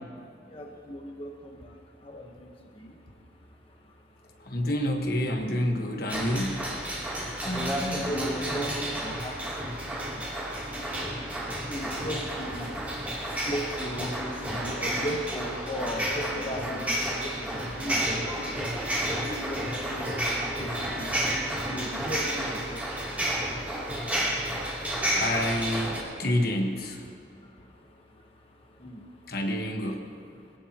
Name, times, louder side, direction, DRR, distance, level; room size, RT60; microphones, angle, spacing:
voice 1, 0.5-3.0 3.7-4.3 7.0-11.0 11.4-21.3 21.6-25.0 27.4-29.1, equal, 30° left, 0 dB, 1.3 m, -38 dB
voice 2, 4.4-6.7 25.1-27.0 29.3-30.0, left 1 dB, 55° left, 2 dB, 1.5 m, -28 dB
sound 1, 6.1-26.0, right 1 dB, 10° right, 3.1 m, -31 dB
22.5 x 17.0 x 3.0 m, 2.4 s
head